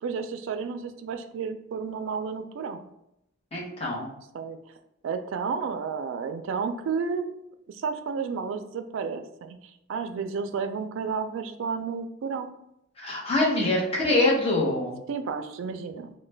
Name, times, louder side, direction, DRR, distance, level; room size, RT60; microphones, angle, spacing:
voice 1, 0.0-2.9 4.3-4.6 5.0-7.4 7.7-9.6 9.9-12.5 15.1-16.1, right 5 dB, 80° right, 9 dB, 0.3 m, -31 dB
voice 2, 3.5-4.1 13.0-15.0, left 2 dB, 30° left, -3 dB, 0.8 m, -24 dB
3.0 x 2.1 x 3.2 m, 0.81 s
head